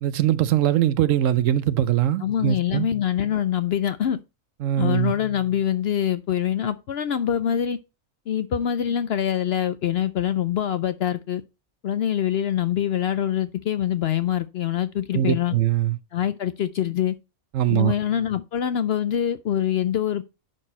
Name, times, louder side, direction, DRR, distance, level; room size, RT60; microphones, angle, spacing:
voice 1, 0.0-2.9 4.6-5.1 15.1-16.0 17.5-17.9, right 11 dB, 70° right, 1.0 m, -21 dB
voice 2, 2.2-4.2 4.8-7.8 8.3-11.4 11.8-15.5 16.1-17.1 17.7-20.2, left 10 dB, 65° left, 0.7 m, -24 dB
11.0 x 4.6 x 4.3 m
omnidirectional pair, 1.5 m